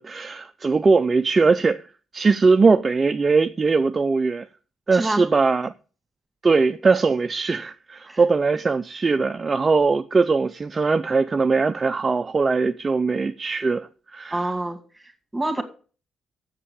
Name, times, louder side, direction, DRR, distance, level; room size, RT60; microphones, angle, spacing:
voice 1, 0.0-1.8 2.1-4.5 4.9-5.7 6.4-14.5, right 4 dB, 30° right, 0.5 m, -20 dB
voice 2, 4.9-5.3 8.1-8.2 14.3-15.6, right 2 dB, 10° right, 2.1 m, -27 dB
7.5 x 7.4 x 6.9 m
cardioid pair, 90°, 0 cm